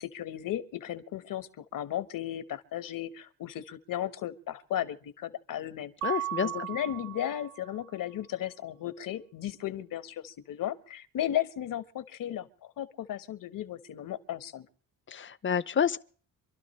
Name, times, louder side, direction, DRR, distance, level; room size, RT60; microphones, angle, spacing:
voice 1, 0.0-5.9 6.4-14.7, left 11 dB, 65° left, 1.5 m, -35 dB
voice 2, 6.0-6.7 15.1-16.0, left 8 dB, 35° left, 0.8 m, -29 dB
Mallet percussion, 6.0-7.8, right 13 dB, 70° right, 2.0 m, -36 dB
27.0 x 12.5 x 3.3 m
cardioid pair, 105°, 35 cm